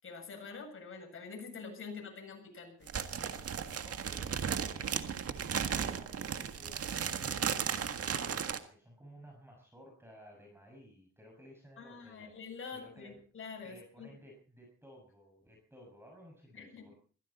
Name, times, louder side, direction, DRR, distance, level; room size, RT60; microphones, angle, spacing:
voice 1, 0.0-2.9 11.8-14.1 16.5-16.9, left 5 dB, 45° left, 3 dB, 7.7 m, -46 dB
sound 1, 2.9-8.6, right 7 dB, 50° right, 1.7 m, -35 dB
voice 2, 3.8-12.3 12.7-13.2 13.6-17.0, equal, 10° right, 0 dB, 6.5 m, -56 dB
22.0 x 15.0 x 4.3 m, 0.42 s
cardioid pair, 90°, 30 cm